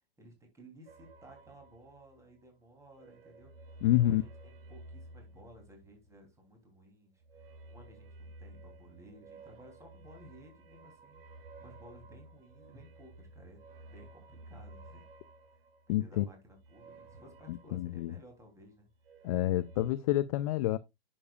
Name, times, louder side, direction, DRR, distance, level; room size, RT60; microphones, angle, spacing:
voice 1, 0.2-3.5 4.0-15.0 15.9-18.9, right 1 dB, 10° right, 3.1 m, -56 dB
sound 1, 0.9-2.5 2.8-6.3 7.2-18.6 18.9-19.9, right 2 dB, 60° right, 1.6 m, -54 dB
voice 2, 3.8-4.2 15.9-16.3 17.5-18.1 19.2-20.8, left 14 dB, 35° left, 0.4 m, -28 dB
9.7 x 6.9 x 2.4 m
hypercardioid pair, 140°, 32 cm